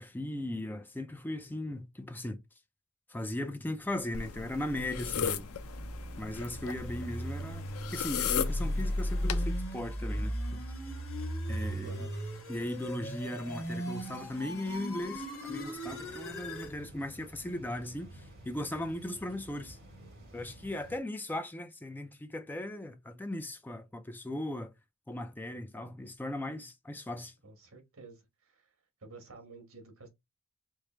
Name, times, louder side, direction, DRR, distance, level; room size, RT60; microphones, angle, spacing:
voice 1, 0.0-2.4 3.1-5.5 6.2-10.6 11.5-11.9 12.5-19.8 20.3-24.7 25.1-27.3, left 1 dB, 10° left, 0.4 m, -38 dB
sound 1, 4.1-9.4, left 8 dB, 80° left, 0.5 m, -37 dB
sound 2, 4.6-16.8, equal, 65° left, 1.5 m, -37 dB
voice 2, 11.8-12.2 12.9-13.1 27.4-28.7 29.0-30.1, right 3 dB, 75° right, 1.4 m, -51 dB
sound 3, 15.8-21.0, equal, 45° right, 2.3 m, -52 dB
4.9 x 2.1 x 3.1 m
head